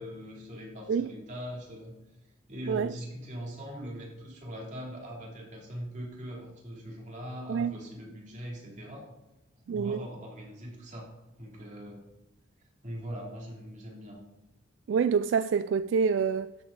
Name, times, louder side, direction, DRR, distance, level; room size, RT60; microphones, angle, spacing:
voice 1, 0.0-1.9 2.5-9.1 9.7-11.1 11.4-12.0 12.8-14.2, equal, 40° right, 2.9 m, -41 dB
voice 2, 9.7-10.0 14.9-16.5, right 6 dB, 75° right, 0.3 m, -27 dB
12.5 x 7.8 x 4.0 m
head